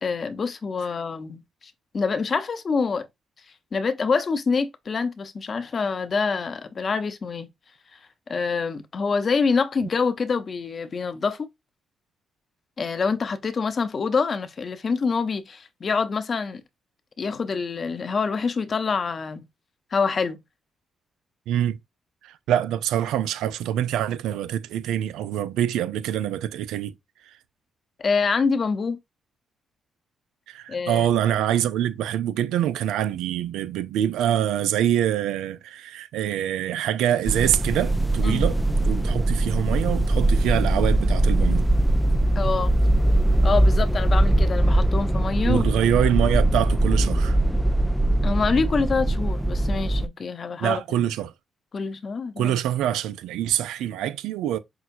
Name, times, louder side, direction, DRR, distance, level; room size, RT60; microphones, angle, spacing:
voice 1, 0.0-1.4 1.9-3.1 3.7-7.5 8.3-11.5 12.8-16.6 17.2-19.4 19.9-20.4 28.0-29.0 30.7-31.1 38.2-38.5 42.4-42.7 43.4-45.6 48.2-50.8 51.7-52.5, left 5 dB, 50° left, 0.7 m, -26 dB
voice 2, 21.5-21.8 22.2-26.9 30.5-38.6 38.8-41.7 45.5-47.4 50.6-51.3 52.4-54.6, right 11 dB, 85° right, 0.4 m, -25 dB
sound 1, 37.3-50.1, right 1 dB, ahead, 0.4 m, -21 dB
5.9 x 2.3 x 2.6 m
supercardioid pair, 50°, 0 cm